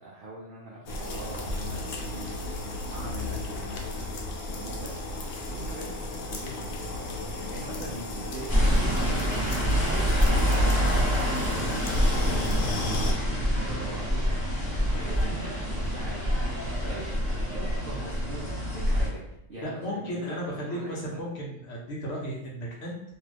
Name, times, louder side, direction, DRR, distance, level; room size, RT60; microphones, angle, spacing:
voice 1, 0.0-2.6 2.9-4.0 4.6-5.2 5.5-21.2, right 2 dB, 55° right, -5 dB, 0.6 m, -42 dB
sound 1, 0.9-13.1, left 2 dB, 85° left, 1.0 m, -33 dB
sound 2, 8.5-19.1, equal, 15° left, 1.2 m, -26 dB
voice 2, 19.6-23.0, equal, 60° left, -3 dB, 0.8 m, -34 dB
2.6 x 2.3 x 3.3 m, 0.81 s
omnidirectional pair, 1.3 m